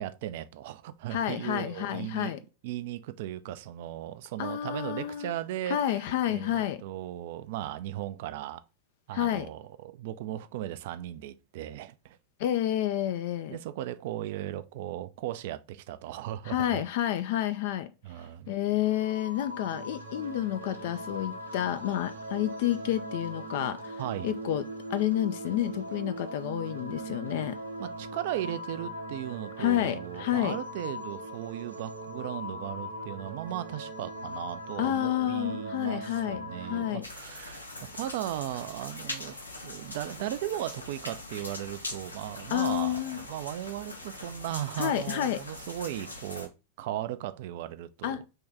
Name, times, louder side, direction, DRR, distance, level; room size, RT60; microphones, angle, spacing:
voice 1, 0.0-2.3 2.6-5.8 6.3-8.6 9.1-12.2 13.5-16.8 18.0-18.5 24.0-24.3 27.8-39.4 39.6-46.5 46.8-48.2, right 13 dB, 50° right, 0.3 m, -37 dB
voice 2, 1.1-2.4 4.4-5.4 5.6-6.8 9.1-9.5 12.4-13.6 16.5-17.9 18.5-24.6 24.9-27.6 29.6-30.6 34.8-37.0 42.5-43.2 44.8-45.4 48.0-48.3, left 12 dB, 50° left, 0.3 m, -30 dB
sound 1, 18.8-37.0, right 1 dB, 80° right, 0.8 m, -40 dB
sound 2, 37.0-46.5, left 2 dB, 80° left, 0.7 m, -42 dB
3.6 x 3.0 x 3.3 m
figure-of-eight pair, 90°, 0 cm